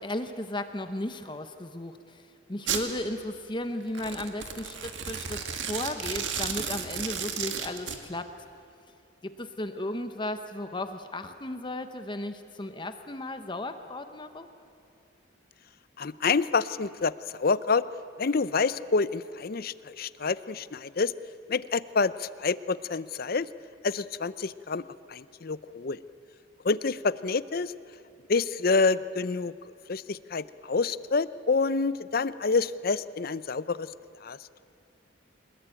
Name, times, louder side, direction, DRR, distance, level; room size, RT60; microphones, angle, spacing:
voice 1, 0.0-8.3 9.2-14.5, left 1 dB, 25° left, 8 dB, 0.9 m, -35 dB
Domestic sounds home sounds, 2.7-2.9 3.9-8.0, right 7 dB, 70° right, 2.1 m, -33 dB
voice 2, 16.0-17.8 18.2-21.1 21.5-23.5 23.8-24.8 25.1-26.0 26.6-27.7 28.3-33.9 34.2-34.4, left 4 dB, 50° left, 16 dB, 0.6 m, -28 dB
25.0 x 21.0 x 9.0 m, 2.5 s
head